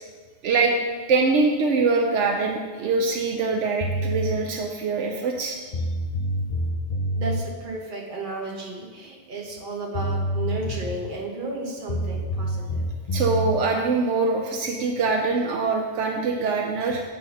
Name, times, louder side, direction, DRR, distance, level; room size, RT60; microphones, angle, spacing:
voice 1, 0.4-0.7 1.1-5.6 13.1-17.0, right 4 dB, 80° right, 2 dB, 1.0 m, -23 dB
sound 1, 3.8-4.4 5.4-5.5 5.7-7.4 9.6-9.7 9.9-11.1 11.9-13.6, equal, 40° left, 0.6 m, -27 dB
voice 2, 7.2-12.9, right 2 dB, 45° right, -2 dB, 1.3 m, -33 dB
8.4 x 3.4 x 5.5 m, 1.5 s
omnidirectional pair, 1.2 m